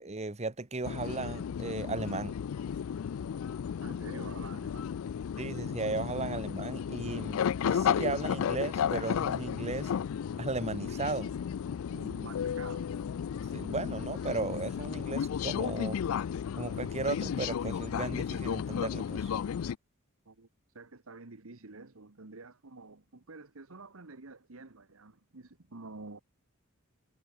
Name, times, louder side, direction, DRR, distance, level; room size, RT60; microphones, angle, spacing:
voice 1, 0.0-2.3 5.4-9.9 10.4-11.3 13.5-16.0 16.6-19.3, right 3 dB, 30° right, 1.4 m, -35 dB
sound 1, 0.8-19.8, left 8 dB, 75° left, 0.4 m, -33 dB
voice 2, 3.8-4.9 11.9-12.9 20.2-20.5 20.7-26.2, right 3 dB, 75° right, 1.4 m, -48 dB
head